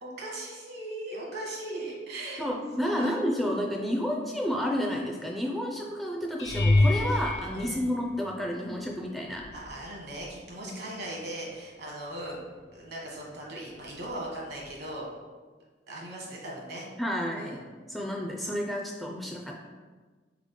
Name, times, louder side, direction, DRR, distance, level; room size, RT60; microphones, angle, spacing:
voice 1, 0.0-2.4 2.9-3.2 7.5-7.9 9.5-12.4 12.7-15.1 15.9-16.9 17.4-17.6, right 1 dB, 65° right, -2 dB, 1.3 m, -38 dB
voice 2, 2.4-9.5 17.0-17.6 17.9-19.5, equal, ahead, -1 dB, 0.3 m, -30 dB
sound 1, 6.4-8.7 9.4-9.8 10.2-10.3 14.7-14.8, left 2 dB, 80° left, 0.8 m, -26 dB
3.8 x 3.7 x 3.6 m, 1.4 s
head